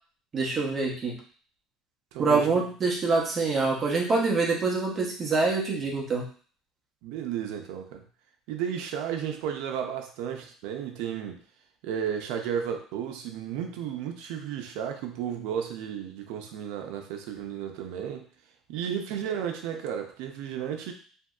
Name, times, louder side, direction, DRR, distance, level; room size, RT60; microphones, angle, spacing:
voice 1, 0.3-1.1 2.2-6.2, right 4 dB, 25° right, -2 dB, 0.7 m, -25 dB
voice 2, 2.1-2.6 7.0-8.0 8.5-11.4 11.8-18.3 18.7-20.9, right 8 dB, 75° right, 4 dB, 0.5 m, -33 dB
2.9 x 2.6 x 2.3 m, 0.43 s
cardioid pair, 160°, 0 cm